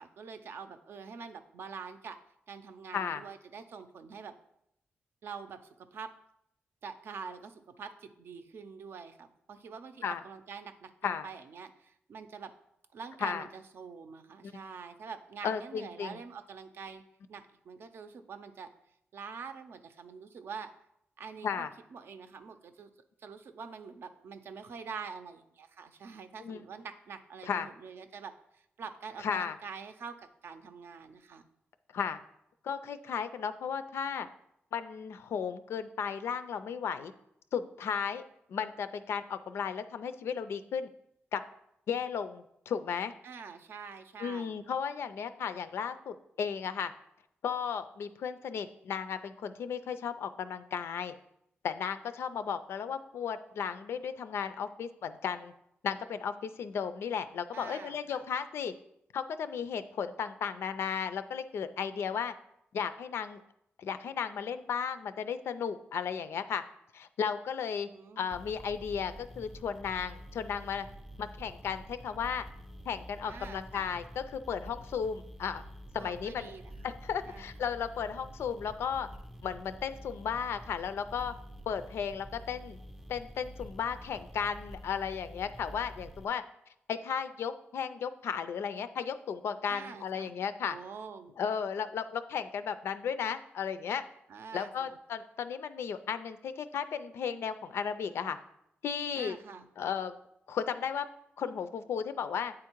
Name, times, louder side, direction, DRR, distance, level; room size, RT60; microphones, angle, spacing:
voice 1, 0.0-2.2 2.5-4.3 5.2-6.1 6.8-12.5 12.9-17.0 17.3-18.7 19.1-20.7 21.2-22.9 23.2-31.5 43.2-44.6 57.5-58.2 67.8-68.3 73.3-73.9 76.0-76.9 77.2-77.5 89.7-90.4 90.7-91.4 94.3-95.0 99.1-99.7, right 5 dB, 70° right, 9 dB, 0.5 m, -45 dB
voice 2, 15.4-16.2 21.4-21.7 26.4-26.6 27.4-27.7 29.2-29.6 31.9-32.2 32.6-34.3 34.7-37.1 37.5-38.2 38.5-40.9 41.3-41.4 41.9-43.1 44.2-46.9 47.4-51.1 51.6-55.5 55.8-58.7 59.1-62.3 62.7-63.4 63.8-66.6 66.9-67.9 68.2-70.9 71.2-72.4 72.9-75.6 75.9-76.5 76.8-79.1 79.4-81.3 81.7-82.8 83.1-86.4 86.9-90.8 91.4-94.0 94.5-98.4 98.8-99.4 99.8-100.1 100.5-101.1 101.4-102.5, left 7 dB, 90° left, 11 dB, 0.4 m, -34 dB
sound 1, 68.3-86.2, equal, 5° right, 0.4 m, -48 dB
8.7 x 3.7 x 4.5 m, 0.79 s
wide cardioid pair, 155°, 4 cm